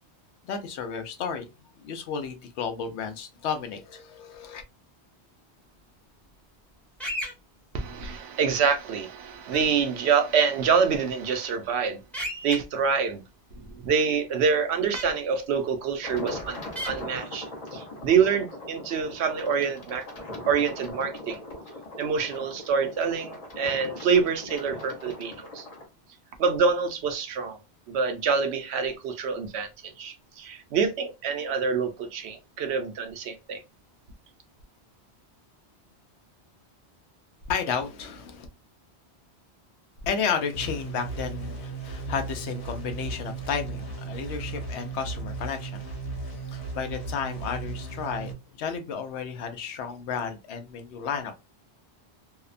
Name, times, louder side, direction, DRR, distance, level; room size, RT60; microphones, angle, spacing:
voice 1, 0.4-1.5 1.8-4.6 37.5-38.5 40.0-45.9 46.5-48.3 48.6-51.3, left 6 dB, 80° left, 0.8 m, -32 dB
sound 1, 7.0-7.3 9.5-9.6 12.1-12.6 14.9-15.0 16.8-16.9, equal, ahead, 0.6 m, -32 dB
voice 2, 7.7-12.0 12.4-13.2 13.6-20.1 20.5-21.4 22.0-25.7 26.4-27.6 27.9-33.6, right 6 dB, 75° right, 0.8 m, -26 dB
sound 2, 16.0-25.9, left 1 dB, 40° left, 0.7 m, -40 dB
sound 3, 40.5-48.3, right 3 dB, 60° left, 1.1 m, -36 dB
2.7 x 2.1 x 2.4 m
omnidirectional pair, 1.1 m